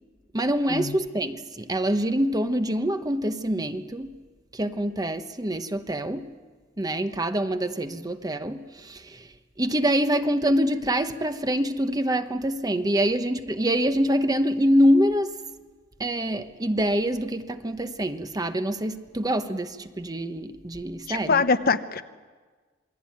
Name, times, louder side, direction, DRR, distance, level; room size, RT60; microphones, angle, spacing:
voice 1, 0.3-4.1 4.5-6.3 6.8-9.3 9.6-15.4 16.0-21.4, equal, 20° right, 1.1 m, -25 dB
voice 2, 21.1-22.0, left 4 dB, 50° left, 1.0 m, -23 dB
27.5 x 21.0 x 9.4 m
head